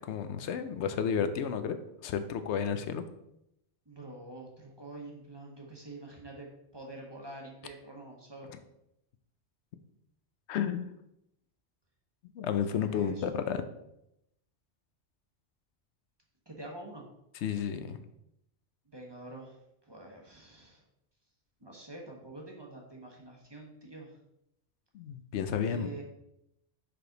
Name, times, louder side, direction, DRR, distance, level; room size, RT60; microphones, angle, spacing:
voice 1, 0.0-1.8 2.0-3.0 10.5-10.9 12.4-13.6 17.4-18.0 24.9-25.9, left 7 dB, 85° left, 10 dB, 0.9 m, -32 dB
voice 2, 3.9-8.5 12.5-13.2 16.5-17.0 18.9-19.6 19.9-20.8 21.6-24.2 25.7-26.0, right 2 dB, 25° right, -1 dB, 1.0 m, -46 dB
4.9 x 4.9 x 3.9 m, 0.82 s
omnidirectional pair, 1.1 m